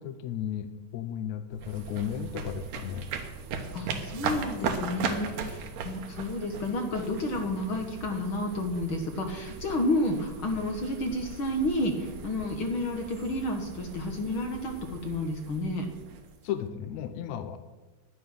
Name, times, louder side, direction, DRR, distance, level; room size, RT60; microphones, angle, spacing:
voice 1, 0.0-3.0 16.4-17.6, left 9 dB, 75° left, 8 dB, 1.8 m, -34 dB
sound 1, 1.5-16.7, right 5 dB, 80° right, 2.7 m, -38 dB
voice 2, 3.7-15.9, left 1 dB, 55° left, 4 dB, 1.6 m, -31 dB
11.0 x 10.5 x 6.5 m, 1.2 s
omnidirectional pair, 3.8 m